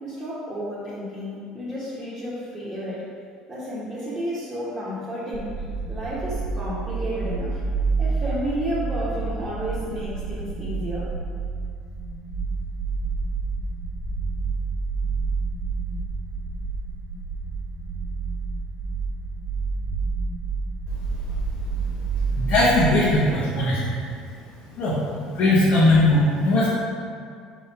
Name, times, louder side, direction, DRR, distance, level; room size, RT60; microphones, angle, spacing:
voice 1, 0.0-3.1 3.5-5.6 5.9-7.6 8.0-11.1, equal, 15° right, -12 dB, 1.3 m, -31 dB
sound 1, 5.3-23.1, right 4 dB, 50° right, 1.1 m, -29 dB
voice 2, 22.4-24.0 24.7-25.0 25.3-26.7, left 1 dB, 50° left, -9 dB, 1.0 m, -19 dB
4.0 x 3.0 x 4.3 m, 2.2 s
hypercardioid pair, 65°, 3 cm